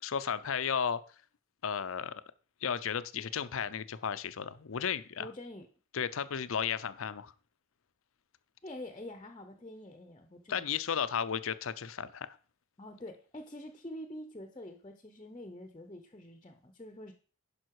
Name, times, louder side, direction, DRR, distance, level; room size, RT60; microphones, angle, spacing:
voice 1, 0.0-1.0 1.6-2.2 2.6-5.3 5.9-7.3 10.5-12.4, left 7 dB, 75° left, 0.6 m, -34 dB
voice 2, 5.2-5.7 8.6-10.6 12.8-17.1, left 1 dB, 25° left, 0.7 m, -46 dB
10.5 x 5.5 x 4.7 m
head